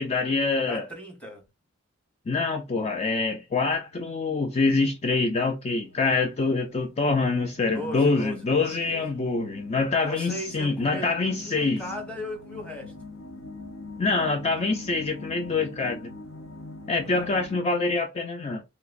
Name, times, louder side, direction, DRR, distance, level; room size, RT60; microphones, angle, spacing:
voice 1, 0.0-0.9 2.3-11.8 14.0-16.1 16.9-18.6, left 3 dB, 30° left, 0.4 m, -25 dB
voice 2, 0.6-1.4 7.7-9.0 10.0-11.1 11.4-12.9 17.1-17.4, equal, 5° left, 1.0 m, -38 dB
sound 1, 3.9-17.6, left 2 dB, 70° left, 0.6 m, -44 dB
3.3 x 2.9 x 2.4 m
head